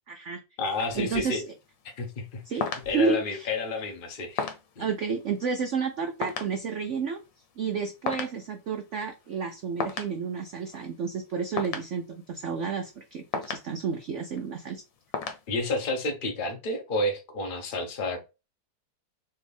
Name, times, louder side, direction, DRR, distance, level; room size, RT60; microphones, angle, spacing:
voice 1, 0.1-0.4 0.9-1.4 2.5-2.7 2.9-3.5 4.8-7.2 7.6-14.8, right 5 dB, 80° right, 0.6 m, -31 dB
voice 2, 0.6-1.4 2.0-4.5 4.8-4.9 15.5-18.3, left 2 dB, 35° left, 1.0 m, -30 dB
sound 1, 0.7-15.9, left 6 dB, 80° left, 1.6 m, -39 dB
4.4 x 2.9 x 3.5 m
omnidirectional pair, 2.0 m